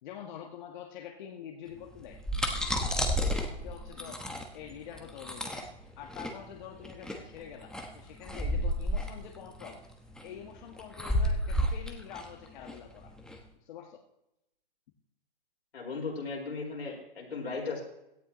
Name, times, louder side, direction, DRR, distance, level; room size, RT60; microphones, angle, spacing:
voice 1, 0.0-2.2 3.4-4.2 4.5-5.7 6.0-9.8 10.2-13.1 13.6-14.0, left 8 dB, 50° left, 1 dB, 1.6 m, -46 dB
sound 1, 2.0-13.4, equal, ahead, 1.1 m, -32 dB
voice 2, 15.7-17.8, left 4 dB, 85° left, -2 dB, 5.3 m, -37 dB
17.0 x 12.0 x 3.1 m, 0.83 s
hypercardioid pair, 130°, 31 cm